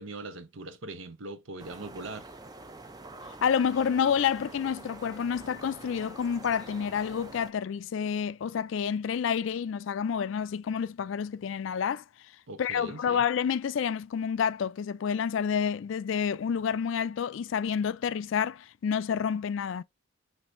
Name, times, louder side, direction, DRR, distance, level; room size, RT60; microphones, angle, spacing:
voice 1, 0.0-2.3 12.5-13.2, right 2 dB, 70° right, 0.7 m, -41 dB
sound 1, 1.6-7.5, right 2 dB, 20° right, 0.4 m, -46 dB
voice 2, 3.4-12.0 12.6-19.8, left 7 dB, 65° left, 0.3 m, -29 dB
6.1 x 3.3 x 2.5 m
head